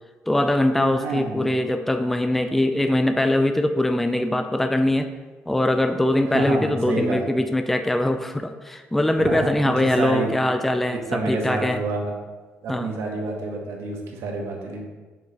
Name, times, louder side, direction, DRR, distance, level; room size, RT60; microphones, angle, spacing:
voice 1, 0.3-5.1 5.5-11.8 12.7-12.9, left 1 dB, 5° left, 7 dB, 0.3 m, -22 dB
voice 2, 0.9-1.5 6.3-7.3 9.2-10.3 10.9-12.1 12.6-14.8, right 3 dB, 85° right, 1 dB, 1.2 m, -28 dB
6.5 x 6.1 x 2.8 m, 1.3 s
cardioid pair, 125°, 4 cm